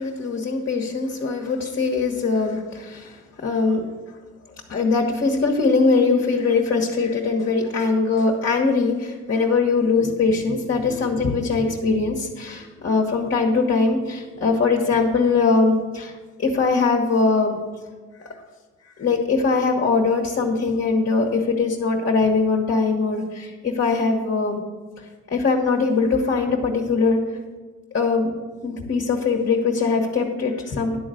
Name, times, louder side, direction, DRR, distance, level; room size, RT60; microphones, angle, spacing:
voice 1, 0.0-3.8 4.7-16.1 16.4-17.6 18.2-18.3 19.0-24.6 25.3-27.2 27.9-28.3 28.6-31.0, left 4 dB, 40° left, 1 dB, 1.3 m, -21 dB
11.0 x 4.0 x 7.6 m, 1.4 s
cardioid pair, 90°, 30 cm